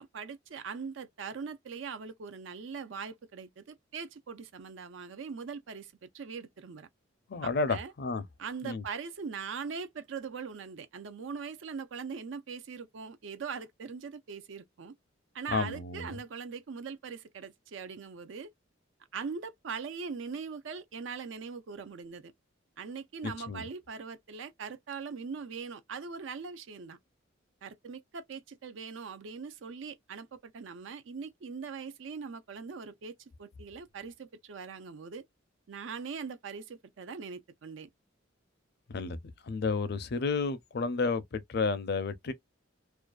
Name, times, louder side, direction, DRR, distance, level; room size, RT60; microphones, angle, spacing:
voice 1, 0.0-6.9 7.4-7.9 8.4-14.9 15.3-18.5 19.1-22.3 22.8-27.0 27.6-35.2 35.7-37.9, right 5 dB, 70° right, 0.5 m, -41 dB
voice 2, 7.3-8.2 8.6-8.8 15.5-16.2 23.2-23.7 38.9-39.2 39.4-42.3, left 4 dB, 55° left, 0.5 m, -31 dB
2.5 x 2.2 x 2.2 m
head